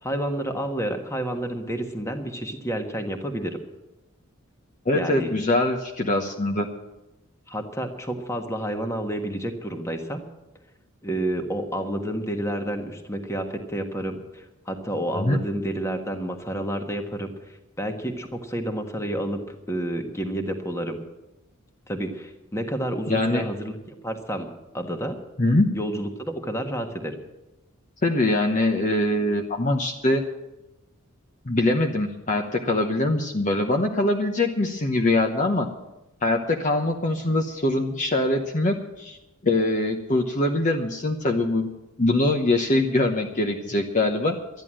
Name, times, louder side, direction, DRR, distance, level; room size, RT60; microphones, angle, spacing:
voice 1, 0.0-3.6 4.9-5.3 7.5-10.2 11.0-17.3 17.8-21.0 21.9-24.5 24.7-25.2 25.7-27.2, right 1 dB, 15° left, 5 dB, 1.4 m, -30 dB
voice 2, 4.9-6.7 15.2-15.4 23.1-23.4 25.4-25.7 28.0-30.2 31.5-35.7 36.2-39.2 39.4-41.7 42.0-44.4, left 2 dB, 35° left, 2 dB, 1.0 m, -23 dB
12.5 x 10.5 x 7.5 m, 0.98 s
head